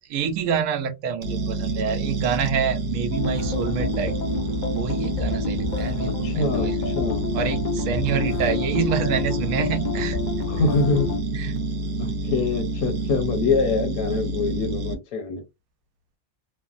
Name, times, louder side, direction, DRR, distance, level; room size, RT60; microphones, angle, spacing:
voice 1, 0.1-4.2 4.7-6.8 7.3-10.2 11.3-11.6, right 7 dB, 80° right, 1.0 m, -27 dB
sound 1, 1.2-14.9, right 2 dB, 60° right, 0.7 m, -28 dB
sound 2, 3.1-11.2, left 4 dB, 65° left, 0.4 m, -29 dB
voice 2, 6.2-7.3 10.5-11.1 12.0-15.4, left 4 dB, 85° left, 1.1 m, -25 dB
3.1 x 2.0 x 2.4 m
omnidirectional pair, 1.5 m